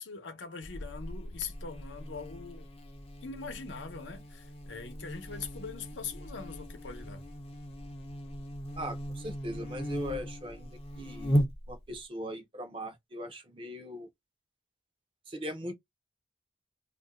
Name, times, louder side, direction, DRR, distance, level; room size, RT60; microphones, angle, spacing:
voice 1, 0.0-2.7 3.2-7.2, left 5 dB, 90° left, 0.7 m, -42 dB
Buzz, 0.6-12.0, equal, 30° left, 0.5 m, -37 dB
voice 2, 8.8-10.7 11.0-11.4 11.7-14.1 15.3-15.7, equal, 30° right, 0.6 m, -39 dB
2.5 x 2.2 x 3.5 m
head